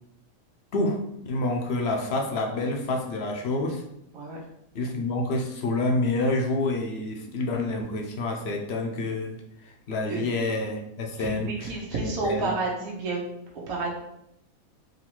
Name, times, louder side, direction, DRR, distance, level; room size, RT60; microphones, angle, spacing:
voice 1, 0.7-3.8 4.7-12.5, left 2 dB, 55° left, 2 dB, 0.8 m, -28 dB
voice 2, 11.2-13.3 13.7-13.9, right 3 dB, 75° right, -3 dB, 1.3 m, -30 dB
3.8 x 2.7 x 4.4 m, 0.79 s
omnidirectional pair, 1.5 m